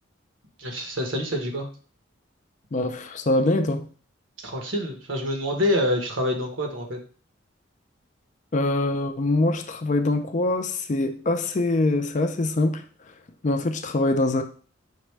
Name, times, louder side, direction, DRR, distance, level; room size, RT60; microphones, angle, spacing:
voice 1, 0.6-1.7 4.4-7.0, left 1 dB, 80° right, 1.1 m, -26 dB
voice 2, 2.7-3.8 8.5-12.8 13.4-14.4, left 2 dB, 40° left, 0.5 m, -24 dB
4.9 x 2.2 x 4.5 m
head